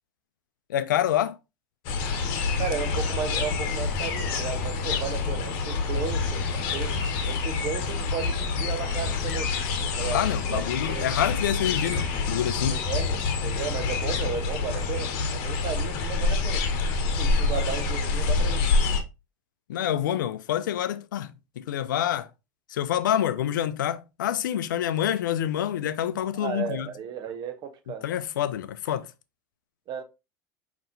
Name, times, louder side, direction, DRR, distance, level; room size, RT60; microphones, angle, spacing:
voice 1, 0.7-1.4 10.0-12.8 19.7-22.3 22.7-26.9 28.0-29.1, left 11 dB, 90° left, 0.4 m, -27 dB
sound 1, 1.8-19.0, left 4 dB, 60° left, 0.9 m, -27 dB
voice 2, 2.6-9.5 10.0-11.1 12.7-16.7 17.1-18.7 26.4-28.1 29.9-30.0, right 7 dB, 45° right, 0.7 m, -34 dB
5.4 x 2.9 x 2.6 m
hypercardioid pair, 100°, 10 cm